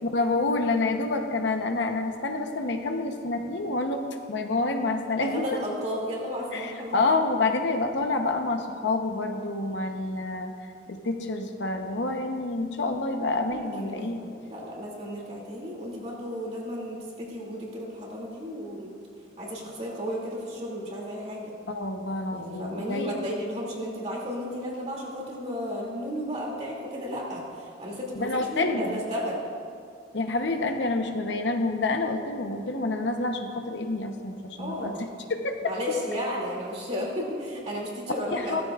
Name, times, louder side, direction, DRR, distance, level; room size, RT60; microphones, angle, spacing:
voice 1, 0.1-5.4 6.5-10.5 10.9-14.2 21.7-23.1 28.2-29.0 30.1-35.6 38.3-38.6, left 2 dB, 65° left, 4 dB, 0.9 m, -28 dB
voice 2, 5.2-7.0 13.5-18.9 19.4-21.5 22.3-29.4 34.6-35.0 35.6-38.6, equal, 35° right, -3 dB, 2.6 m, -33 dB
16.5 x 14.0 x 2.4 m, 2.2 s
head